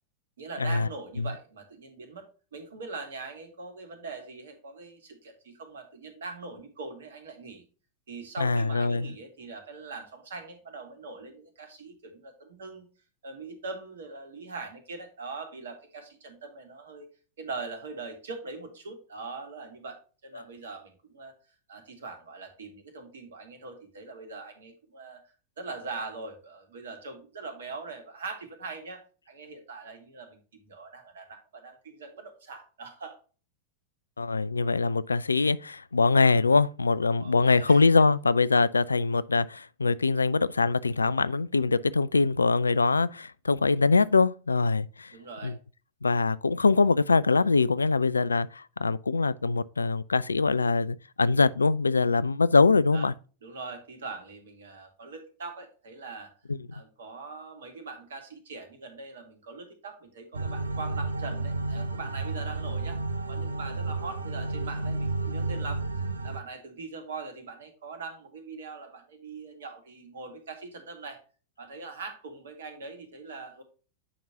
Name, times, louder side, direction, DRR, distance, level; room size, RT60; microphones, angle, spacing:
voice 1, 0.4-2.2 2.5-7.6 8.1-12.9 13.2-17.1 17.4-21.3 21.7-25.2 25.6-33.2 37.2-37.8 45.1-45.6 52.9-53.1 53.4-56.3 56.7-63.0 63.3-65.8 66.2-71.2 71.6-73.6, right 4 dB, 65° right, 2.0 m, -42 dB
voice 2, 8.4-9.1 20.3-20.4 34.2-45.1 45.4-45.5 46.0-53.1 56.5-56.6, left 4 dB, 75° left, 0.3 m, -23 dB
sound 1, 60.3-66.4, right 3 dB, 80° right, 0.7 m, -31 dB
8.5 x 5.3 x 2.8 m
figure-of-eight pair, 90°, 0 cm